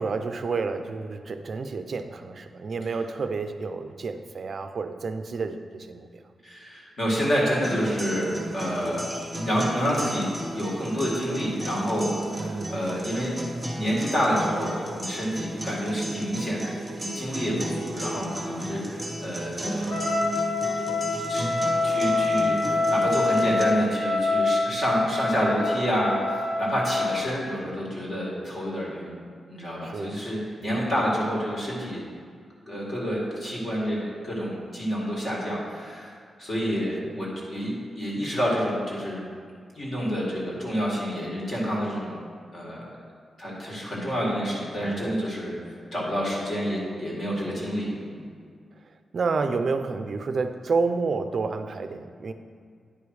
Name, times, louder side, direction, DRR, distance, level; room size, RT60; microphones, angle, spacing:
voice 1, 0.0-6.1 12.4-12.8 29.8-30.2 30.6-30.8 44.9-45.2 47.5-47.6 49.1-52.3, right 4 dB, 45° right, 8 dB, 0.4 m, -30 dB
voice 2, 6.4-9.1 9.4-10.3 10.5-13.3 13.7-19.9 21.3-21.4 21.8-29.1 29.5-32.0 32.7-36.1 36.4-39.3 39.8-42.2 42.5-42.8 43.4-48.2, equal, 35° left, -4 dB, 2.1 m, -28 dB
sound 1, 7.6-23.6, right 1 dB, 5° right, 1.1 m, -34 dB
Trumpet, 19.8-27.2, left 3 dB, 60° left, 1.2 m, -26 dB
9.8 x 5.1 x 4.8 m, 2.1 s
wide cardioid pair, 175°, 0 cm